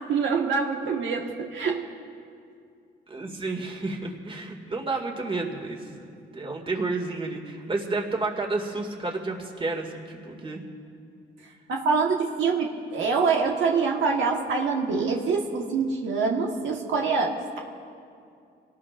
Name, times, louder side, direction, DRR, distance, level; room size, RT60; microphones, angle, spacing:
voice 1, 0.1-1.9 11.7-17.6, right 5 dB, 75° right, 0 dB, 1.5 m, -25 dB
voice 2, 3.1-10.6, right 3 dB, 25° right, 2 dB, 2.3 m, -31 dB
26.0 x 18.5 x 2.6 m, 2.4 s
cardioid pair, 90°, 20 cm